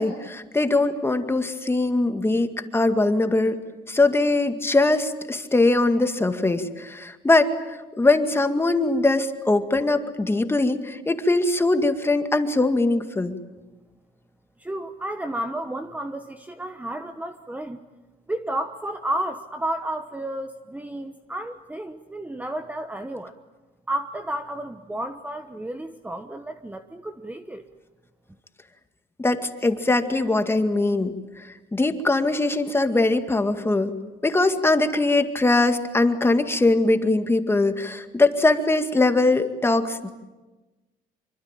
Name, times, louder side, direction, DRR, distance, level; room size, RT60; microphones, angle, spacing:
voice 1, 0.0-3.6 3.9-13.3 29.2-31.2 31.7-33.9 34.2-40.1, left 2 dB, 15° left, 8 dB, 2.0 m, -21 dB
voice 2, 14.6-17.8 18.3-23.4 23.9-27.6, right 1 dB, 10° right, 8 dB, 1.1 m, -32 dB
26.0 x 23.5 x 9.1 m, 1.2 s
cardioid pair, 110°, 17 cm